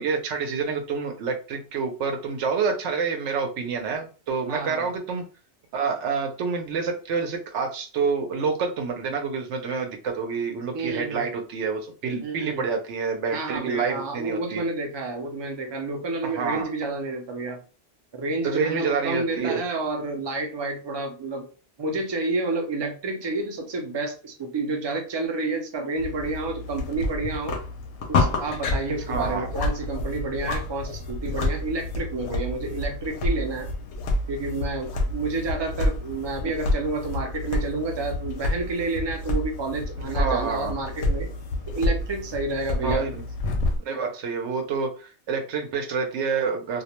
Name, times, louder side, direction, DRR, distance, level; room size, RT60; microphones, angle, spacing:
voice 1, 0.0-5.2 5.7-14.6 16.2-16.6 18.4-19.6 29.1-29.5 40.0-40.7 42.8-43.2 43.8-46.8, right 5 dB, 85° right, 5 dB, 0.9 m, -28 dB
voice 2, 4.5-4.9 10.7-11.2 12.2-12.7 13.3-17.6 18.1-21.5 21.8-27.6 28.1-33.7 34.3-41.3 41.7-43.1, right 3 dB, 40° right, 3 dB, 0.4 m, -30 dB
sound 1, 26.0-43.8, left 2 dB, 80° left, 0.9 m, -29 dB
2.4 x 2.0 x 2.9 m, 0.36 s
omnidirectional pair, 1.2 m